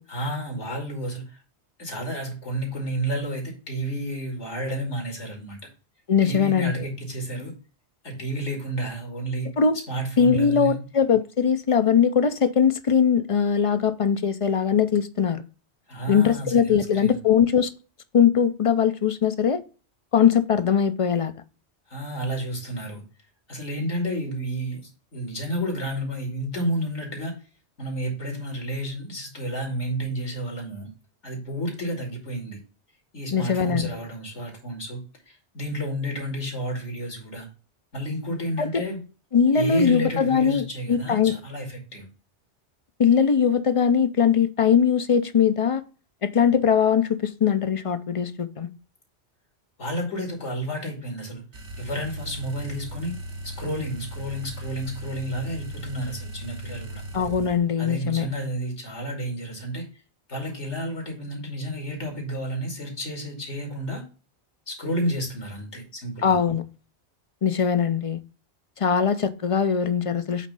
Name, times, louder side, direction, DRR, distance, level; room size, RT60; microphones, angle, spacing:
voice 1, 0.1-1.4 1.8-5.6 6.2-7.5 8.0-9.5 9.9-10.8 15.9-17.2 21.9-23.0 23.5-27.3 27.8-30.9 31.2-32.6 33.1-37.5 37.9-39.0 39.5-42.1 49.8-51.4 51.8-53.1 53.4-57.0 57.8-59.8 60.3-64.0 64.7-66.3, right 1 dB, 80° left, 2.7 m, -31 dB
voice 2, 6.1-6.9 9.6-9.8 10.2-15.4 16.1-17.7 18.1-19.6 20.1-21.3 33.3-33.9 38.6-38.7 39.3-41.3 43.0-45.8 46.2-48.7 57.1-58.3 66.2-66.6 67.4-68.2 68.8-70.5, left 7 dB, 40° left, 0.5 m, -21 dB
sound 1, 51.5-57.6, right 1 dB, 80° right, 1.5 m, -37 dB
8.4 x 3.2 x 5.3 m
omnidirectional pair, 1.2 m